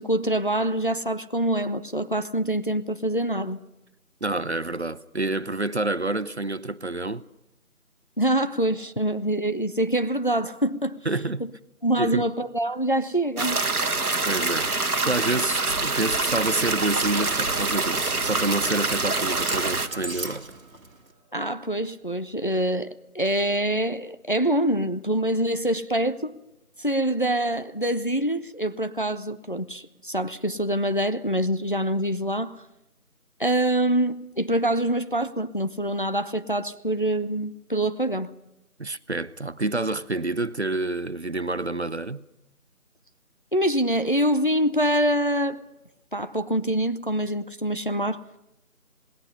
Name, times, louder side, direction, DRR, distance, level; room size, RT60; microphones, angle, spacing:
voice 1, 0.0-3.6 8.2-11.0 11.8-13.6 21.3-26.3 26.8-32.6 33.4-38.3 43.5-45.6 46.1-48.2, right 1 dB, 35° left, 0.7 m, -25 dB
voice 2, 4.2-7.2 11.1-11.4 12.0-12.2 14.3-14.7 15.1-20.5 38.8-42.2, right 2 dB, 50° right, 0.7 m, -28 dB
sound 1, 13.4-19.9, right 3 dB, 85° right, 1.4 m, -26 dB
Dog, 15.3-21.1, right 2 dB, 65° right, 2.4 m, -37 dB
sound 2, 17.9-21.8, right 4 dB, 30° right, 2.2 m, -45 dB
27.0 x 19.5 x 5.5 m
figure-of-eight pair, 170°, 43 cm